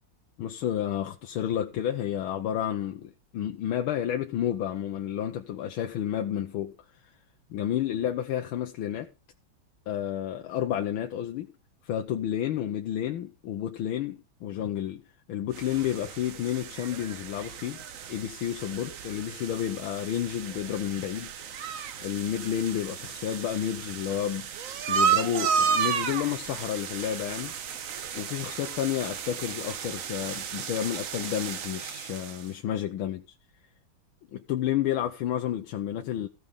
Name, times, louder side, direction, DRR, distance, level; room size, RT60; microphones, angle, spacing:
voice 1, 0.4-6.8 7.5-9.1 9.9-11.5 11.8-15.0 15.3-21.3 22.0-24.5 24.9-27.6 28.1-33.2 34.3-36.3, left 10 dB, 90° left, 1.6 m, -31 dB
sound 1, 15.5-32.5, right 7 dB, 55° right, 1.0 m, -33 dB
15.0 x 5.4 x 6.5 m
omnidirectional pair, 2.2 m